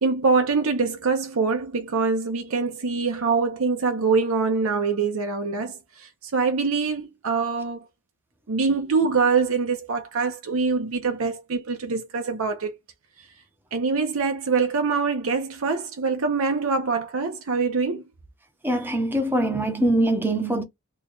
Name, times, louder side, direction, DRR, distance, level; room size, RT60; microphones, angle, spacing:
voice 1, 0.0-7.9 8.5-12.7 13.7-18.0, right 4 dB, 80° right, 0.7 m, -24 dB
voice 2, 18.6-20.6, right 1 dB, 10° right, 0.7 m, -23 dB
3.2 x 2.2 x 3.8 m
head